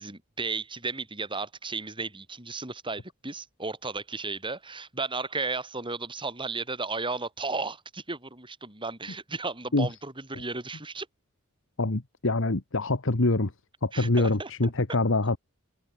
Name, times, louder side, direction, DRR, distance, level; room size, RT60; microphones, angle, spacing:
voice 1, 0.0-11.1 13.9-14.7, right 3 dB, 25° right, 7.1 m, -34 dB
voice 2, 11.8-13.5 13.8-15.4, left 2 dB, 65° left, 1.5 m, -25 dB
head